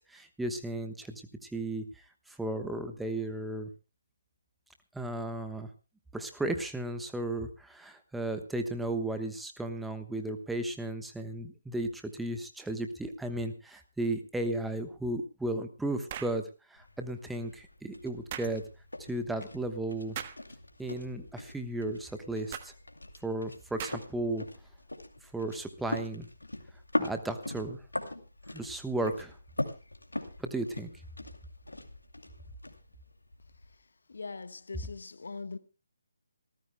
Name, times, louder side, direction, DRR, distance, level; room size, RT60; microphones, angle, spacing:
voice 1, 0.1-3.7 4.9-5.7 6.1-16.4 16.7-18.6 19.1-20.2 20.8-22.7 23.2-24.4 25.3-26.3 27.0-27.8 28.5-29.4 30.4-30.9, right 1 dB, 5° right, 1.1 m, -35 dB
sound 1, 16.1-16.4 18.3-18.5 20.1-20.4 22.5-22.7 23.8-24.2, right 10 dB, 30° right, 1.2 m, -39 dB
sound 2, 16.8-33.8, left 1 dB, 80° left, 2.4 m, -41 dB
voice 2, 34.1-35.6, left 4 dB, 60° left, 1.2 m, -41 dB
27.0 x 14.5 x 2.2 m
figure-of-eight pair, 145°, 0 cm